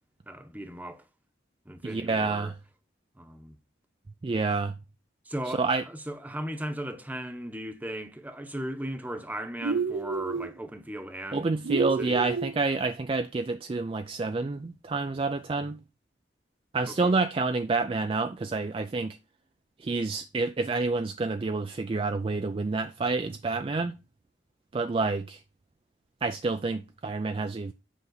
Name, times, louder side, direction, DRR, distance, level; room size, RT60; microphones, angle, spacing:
voice 1, 0.3-1.0 1.6-2.5 3.2-3.6 5.2-11.5 12.0-12.2 16.9-17.2, right 1 dB, 10° right, 0.9 m, -37 dB
voice 2, 1.8-2.5 4.2-4.8 5.6-5.8 11.3-15.8 16.7-19.2 19.8-24.0 24.7-25.4 26.2-27.7, right 3 dB, 30° right, 0.3 m, -28 dB
sound 1, 9.6-10.5 11.6-12.6, right 5 dB, 85° right, 0.6 m, -29 dB
8.2 x 5.5 x 3.9 m
head